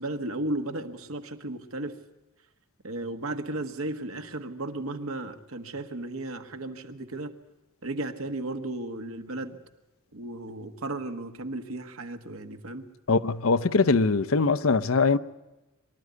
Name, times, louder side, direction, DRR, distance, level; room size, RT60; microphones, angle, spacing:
voice 1, 0.0-2.0 2.8-7.3 7.8-9.6 10.1-12.8, right 2 dB, 85° right, 1.5 m, -34 dB
voice 2, 13.1-15.2, left 4 dB, 75° left, 0.7 m, -22 dB
23.5 x 13.0 x 9.6 m
head